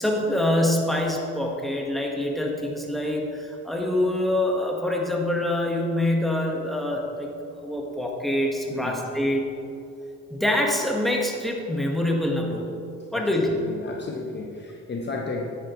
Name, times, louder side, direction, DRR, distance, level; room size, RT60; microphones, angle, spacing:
voice 1, 0.0-9.5 10.3-12.7 13.1-13.5, left 1 dB, ahead, -1 dB, 1.5 m, -25 dB
voice 2, 13.1-15.5, left 3 dB, 35° left, 1 dB, 0.9 m, -33 dB
9.6 x 9.2 x 3.1 m, 2.6 s
cardioid pair, 90°, 30 cm